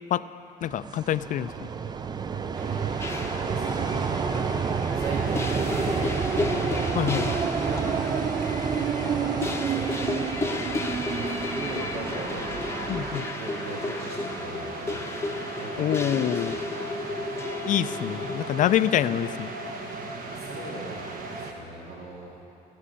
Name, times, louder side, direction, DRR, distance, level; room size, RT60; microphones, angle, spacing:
voice 1, 0.6-1.7 6.9-7.3 12.9-13.3 15.8-16.6 17.6-19.5, left 11 dB, 50° left, 14 dB, 0.4 m, -26 dB
sound 1, 0.6-13.2, right 6 dB, 25° right, 0.4 m, -29 dB
sound 2, 2.5-21.5, right 2 dB, 55° right, 1.4 m, -37 dB
sound 3, 3.0-18.9, left 3 dB, 15° left, 0.8 m, -34 dB
voice 2, 3.0-8.6 9.0-10.3 11.1-12.6 13.2-15.0 15.4-16.6 20.3-22.4, right 2 dB, 70° right, -4 dB, 2.3 m, -39 dB
13.5 x 6.3 x 9.8 m, 2.7 s
cardioid pair, 110°, 17 cm